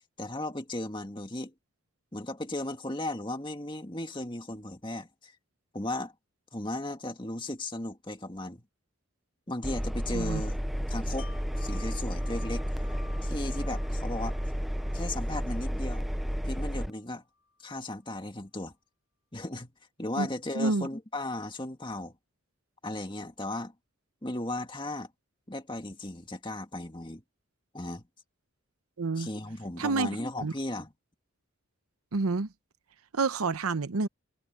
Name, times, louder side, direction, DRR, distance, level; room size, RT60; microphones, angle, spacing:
voice 1, 0.2-1.5 2.1-5.3 5.7-6.1 6.5-8.6 9.5-10.6 10.9-11.3 11.6-12.7 13.2-14.4 14.9-16.1 16.4-17.2 17.6-18.7 19.3-19.7 20.0-22.1 22.8-23.7 24.2-25.1 25.5-27.2 27.7-28.0 29.2-30.9, left 1 dB, 20° left, 2.0 m, -36 dB
Engine, 9.6-16.9, equal, ahead, 0.4 m, -32 dB
Wind chime, 11.2-17.0 17.4-17.5, left 4 dB, 80° left, 7.2 m, -54 dB
voice 2, 20.5-20.9 29.0-29.3 29.8-30.5 32.1-32.5 33.1-34.1, right 3 dB, 90° right, 0.8 m, -29 dB
head